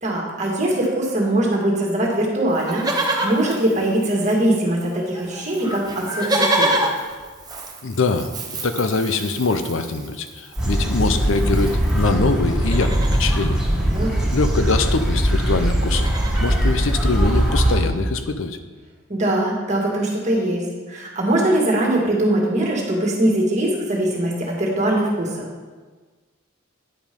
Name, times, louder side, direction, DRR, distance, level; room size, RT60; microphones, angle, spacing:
voice 1, 0.0-6.8 13.9-14.3 19.1-25.5, right 1 dB, 35° right, -2 dB, 1.8 m, -21 dB
Livestock farm animals working animals, 2.5-4.6 4.8-4.9 5.1-12.1 12.5-13.4 14.7-14.8 14.9-15.2 15.6-16.5 17.1-17.2, right 1 dB, 20° right, 0.9 m, -28 dB
voice 2, 7.8-8.4 8.6-13.6 14.3-16.1 16.4-18.6, left 3 dB, 65° left, 9 dB, 0.6 m, -23 dB
sound 1, 10.6-17.8, equal, 5° right, 1.8 m, -20 dB
9.7 x 5.1 x 5.2 m, 1.4 s
head